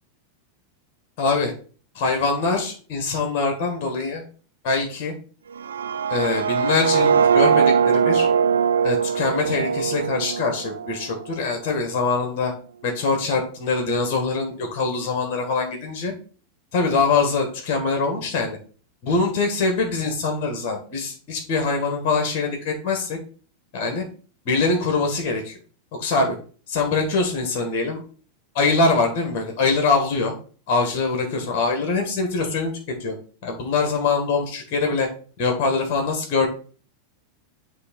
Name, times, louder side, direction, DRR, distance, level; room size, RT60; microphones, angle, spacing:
voice 1, 1.2-1.5 2.0-4.2 4.6-5.1 6.1-8.3 8.8-12.5 12.8-16.1 16.7-18.6 19.0-23.2 23.7-24.0 24.5-25.5 26.0-26.4 26.7-28.0 28.5-30.3 30.7-32.7 33.0-33.1 33.4-35.1 35.4-36.5, left 4 dB, 45° left, 3 dB, 1.9 m, -23 dB
sound 1, 5.5-11.5, right 7 dB, 75° right, 0.4 m, -21 dB
9.5 x 3.2 x 4.5 m, 0.40 s
figure-of-eight pair, 90°, 0 cm